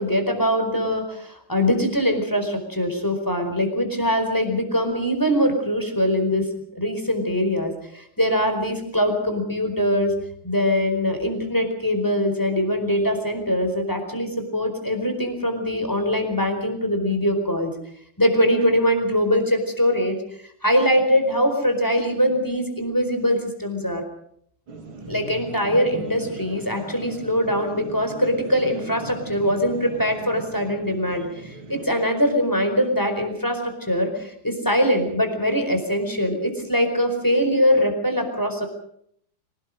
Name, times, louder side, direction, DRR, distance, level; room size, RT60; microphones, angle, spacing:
voice 1, 0.0-6.5 6.7-10.1 10.4-17.7 18.2-20.2 20.6-24.0 25.1-38.7, equal, 10° left, 5 dB, 4.5 m, -22 dB
sound 1, 24.7-31.8, right 2 dB, 85° right, 3.3 m, -39 dB
25.5 x 18.5 x 6.5 m, 0.68 s
omnidirectional pair, 2.2 m